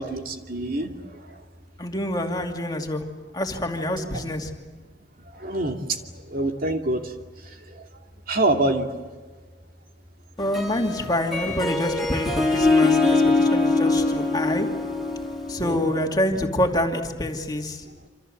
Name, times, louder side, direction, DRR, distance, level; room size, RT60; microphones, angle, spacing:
voice 1, 0.0-1.4 5.3-6.0 6.3-7.1 7.4-7.9 8.3-8.9 15.6-15.8, right 2 dB, 50° right, 4 dB, 2.6 m, -26 dB
voice 2, 1.8-3.0 3.3-4.5 10.4-14.7 15.5-18.1, left 1 dB, 20° left, 3 dB, 2.7 m, -26 dB
Harp, 10.4-15.9, left 3 dB, ahead, 4.3 m, -23 dB
27.5 x 27.0 x 7.9 m, 1.3 s
head